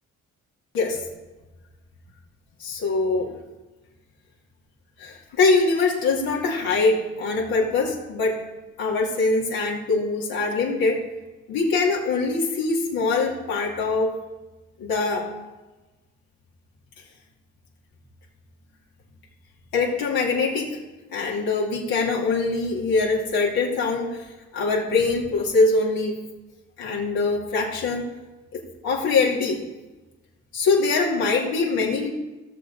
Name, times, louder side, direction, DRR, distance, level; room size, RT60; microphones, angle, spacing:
voice 1, 2.6-3.3 5.0-8.4 8.8-11.0 11.5-14.1 14.8-15.3 19.7-20.8 21.1-24.3 24.5-26.2 26.8-28.0 28.5-29.6 30.5-32.1, left 3 dB, 80° left, -3 dB, 2.6 m, -23 dB
17.0 x 6.6 x 4.1 m, 1.1 s
supercardioid pair, 55°, 36 cm